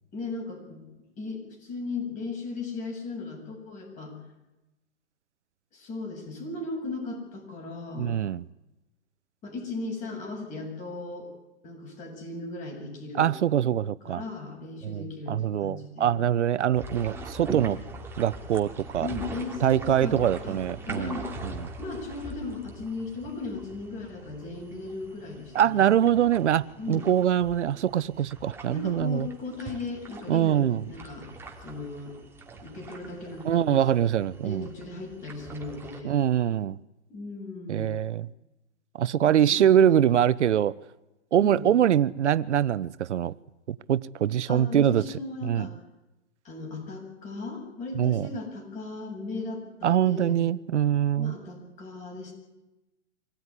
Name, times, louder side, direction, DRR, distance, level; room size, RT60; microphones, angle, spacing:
voice 1, 0.1-0.8 1.2-4.1 5.7-8.1 9.4-11.3 11.6-13.3 14.0-16.2 19.0-20.6 20.8-21.3 21.8-25.9 26.8-27.1 28.7-31.3 31.6-32.1 32.6-33.9 34.4-36.2 37.1-37.9 39.2-40.2 41.4-41.7 44.5-45.7 46.4-50.4 51.2-52.3, left 3 dB, 20° left, 7.8 m, -37 dB
voice 2, 8.0-8.4 13.1-14.2 14.8-17.8 18.2-19.1 19.6-21.7 25.5-29.3 30.3-30.8 33.4-34.7 36.0-36.8 37.7-38.3 38.9-40.7 41.3-43.3 43.7-45.0 45.4-45.7 48.0-48.3 49.8-51.4, right 10 dB, 80° right, 0.9 m, -24 dB
sound 1, 16.7-36.0, right 2 dB, 5° right, 2.5 m, -42 dB
25.5 x 17.5 x 9.9 m
hypercardioid pair, 150°, 35 cm